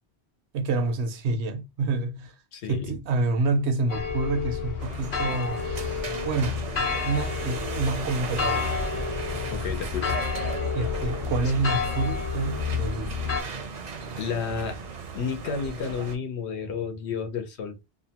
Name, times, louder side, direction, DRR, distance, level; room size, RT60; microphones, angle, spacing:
voice 1, 0.5-2.3 2.7-5.6 6.2-6.8 7.0-8.8 10.7-13.3, right 3 dB, 85° right, 0.9 m, -28 dB
voice 2, 2.5-2.9 9.5-10.2 14.2-14.8 15.1-17.8, left 6 dB, 85° left, 1.0 m, -31 dB
sound 1, 3.9-13.4, left 5 dB, 55° left, 0.8 m, -30 dB
sound 2, 4.8-16.2, right 5 dB, 55° right, 0.5 m, -37 dB
2.7 x 2.1 x 2.8 m
omnidirectional pair, 1.1 m